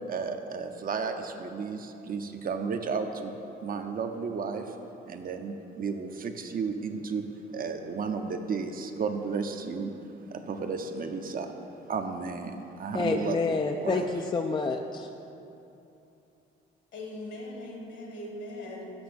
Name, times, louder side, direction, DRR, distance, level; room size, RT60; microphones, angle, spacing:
voice 1, 0.1-3.3 3.6-4.7 5.1-7.3 7.5-9.9 10.3-11.5 11.9-13.4 13.8-14.1, right 5 dB, 45° right, 6 dB, 0.6 m, -33 dB
voice 2, 12.9-15.1, left 4 dB, 25° left, 4 dB, 0.4 m, -28 dB
voice 3, 16.9-18.9, left 1 dB, 65° left, -1 dB, 1.9 m, -40 dB
6.1 x 5.6 x 6.9 m, 2.8 s
cardioid pair, 90°, 20 cm